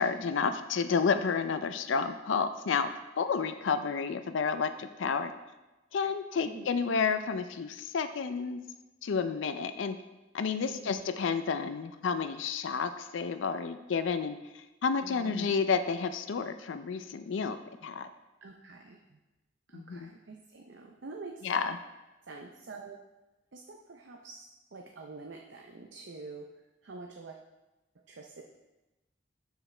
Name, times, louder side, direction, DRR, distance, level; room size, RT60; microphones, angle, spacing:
voice 1, 0.0-5.3 5.9-8.6 9.0-10.0 10.3-17.6 17.8-18.1 19.7-20.1 21.4-21.8, left 5 dB, 85° left, 10 dB, 0.4 m, -30 dB
voice 2, 10.7-11.0 15.0-15.5 18.4-19.2 19.7-21.5 22.3-23.0 23.5-24.4 24.7-26.5 26.8-27.4 28.1-28.4, right 3 dB, 70° right, 2 dB, 0.6 m, -46 dB
12.5 x 4.9 x 3.3 m, 1.1 s
head